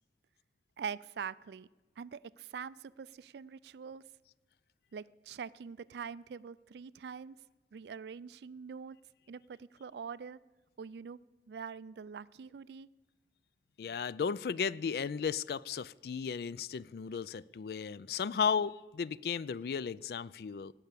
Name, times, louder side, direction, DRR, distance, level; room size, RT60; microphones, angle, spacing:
voice 1, 0.8-1.7 2.0-4.0 4.9-7.4 7.7-9.0 9.3-10.4 10.8-11.2 11.5-12.9, right 6 dB, 70° right, 0.3 m, -44 dB
voice 2, 13.8-20.7, left 6 dB, 60° left, 0.3 m, -35 dB
17.0 x 5.8 x 8.3 m
head